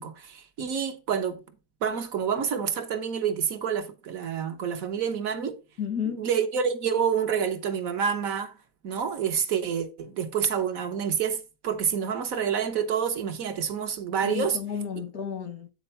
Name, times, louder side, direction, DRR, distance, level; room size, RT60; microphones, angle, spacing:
voice 1, 0.0-1.4 1.8-5.6 6.2-8.6 8.8-14.6, right 7 dB, 75° right, 1.4 m, -28 dB
voice 2, 5.8-6.3 14.2-15.7, left 7 dB, 85° left, 1.8 m, -32 dB
9.0 x 4.3 x 4.3 m
omnidirectional pair, 1.5 m